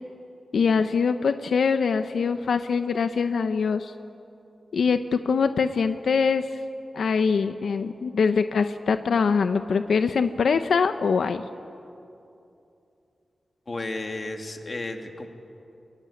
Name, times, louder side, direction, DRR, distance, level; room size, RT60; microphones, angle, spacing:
voice 1, 0.5-3.9 4.7-6.5 6.9-11.4, left 5 dB, 85° left, 9 dB, 0.8 m, -23 dB
voice 2, 13.7-15.3, left 2 dB, 35° left, 4 dB, 2.5 m, -33 dB
25.5 x 23.0 x 9.9 m, 2.7 s
wide cardioid pair, 120°, 0 cm